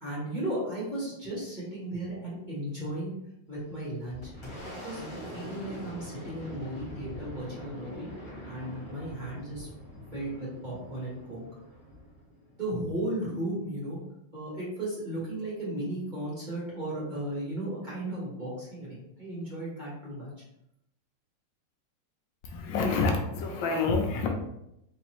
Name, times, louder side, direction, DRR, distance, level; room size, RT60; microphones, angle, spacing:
voice 1, 0.0-3.1 3.5-4.3 4.8-8.1 8.4-9.7 10.1-11.4 12.5-14.0 14.3-20.3, right 1 dB, 25° right, -7 dB, 1.5 m, -35 dB
Boom, 3.5-13.0, equal, 15° left, 1.4 m, -44 dB
voice 2, 22.4-24.3, left 4 dB, 85° left, 3 dB, 1.4 m, -27 dB
4.0 x 3.3 x 3.0 m, 0.81 s
omnidirectional pair, 2.0 m